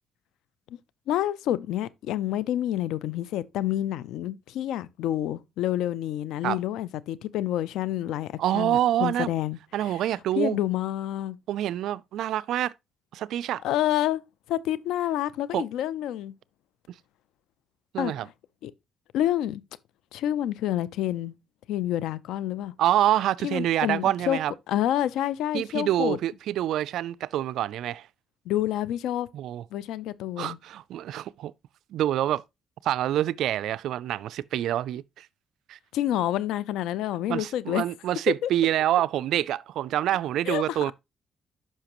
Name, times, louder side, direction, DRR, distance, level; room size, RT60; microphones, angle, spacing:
voice 1, 1.1-10.0 10.4-11.4 13.6-14.2 14.5-16.3 18.0-18.3 18.6-18.7 19.1-19.6 20.1-21.3 21.7-22.7 23.4-24.4 24.7-26.2 28.5-29.3 29.7-30.6 35.9-37.8 38.3-38.5 40.5-40.9, left 12 dB, 90° left, 0.5 m, -28 dB
voice 2, 8.4-9.3 9.7-10.6 11.5-12.7 13.1-13.6 15.5-15.6 16.9-17.0 17.9-18.3 22.8-24.5 25.5-28.1 29.3-29.6 30.4-31.5 31.9-32.4 32.8-35.3 35.7-35.8 37.3-40.9, right 12 dB, 80° right, 0.3 m, -26 dB
9.9 x 5.7 x 3.0 m
cardioid pair, 90°, 0 cm